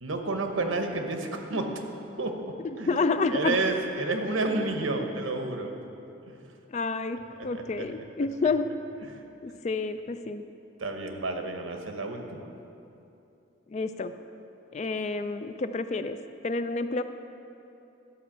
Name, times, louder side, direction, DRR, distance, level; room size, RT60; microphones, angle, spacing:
voice 1, 0.0-1.7 2.2-3.0 3.3-5.7 6.3-6.4 7.4-7.9 9.1-9.2 10.8-12.5, right 2 dB, 85° right, 4 dB, 1.1 m, -30 dB
voice 2, 2.6-3.6 4.1-4.2 6.7-8.7 9.4-10.4 13.7-14.1 14.7-16.2 16.4-17.0, left 3 dB, 35° left, 10 dB, 0.3 m, -29 dB
11.5 x 5.5 x 7.2 m, 2.8 s
head